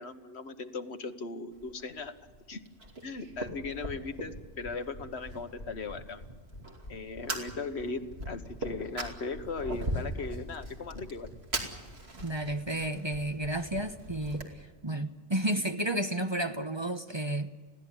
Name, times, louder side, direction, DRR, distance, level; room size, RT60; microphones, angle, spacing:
voice 1, 0.0-2.1 2.5-2.6 3.0-6.2 6.9-11.3, left 4 dB, 75° left, 1.5 m, -38 dB
Fire, 1.5-14.5, right 1 dB, 65° right, 2.9 m, -41 dB
sound 1, 4.3-14.1, left 1 dB, 55° left, 7.1 m, -46 dB
voice 2, 12.1-17.5, right 1 dB, 25° right, 1.0 m, -32 dB
21.5 x 16.5 x 9.9 m
omnidirectional pair, 1.1 m